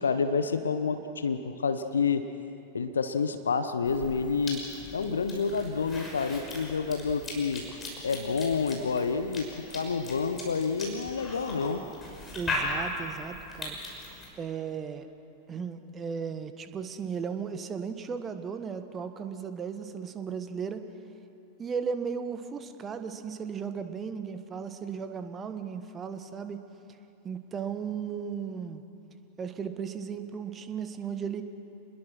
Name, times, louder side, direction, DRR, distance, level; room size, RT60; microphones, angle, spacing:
voice 1, 0.0-2.3 2.7-4.7 4.9-7.6 8.0-11.9, left 5 dB, 70° left, 10 dB, 1.0 m, -29 dB
Cough / Chewing mastication, 3.8-14.3, left 2 dB, 20° left, 5.9 m, -39 dB
voice 2, 12.3-13.8 14.4-15.1 15.5-20.8 21.6-26.6 27.2-28.8 29.4-31.4, right 6 dB, 25° right, 9 dB, 1.4 m, -36 dB
29.0 x 21.0 x 6.2 m, 2.7 s
figure-of-eight pair, 90°, 0 cm